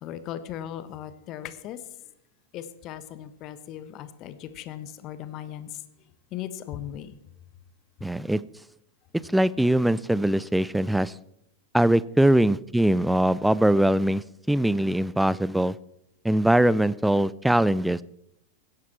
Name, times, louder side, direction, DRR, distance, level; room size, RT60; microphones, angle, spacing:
voice 1, 0.0-1.8 2.5-5.8 6.3-7.2, left 11 dB, 35° left, 12 dB, 1.2 m, -38 dB
voice 2, 8.0-8.4 9.3-11.1 11.7-15.8 16.2-18.0, right 1 dB, 5° right, 20 dB, 0.4 m, -22 dB
17.0 x 11.5 x 4.6 m, 0.79 s
figure-of-eight pair, 90°, 0 cm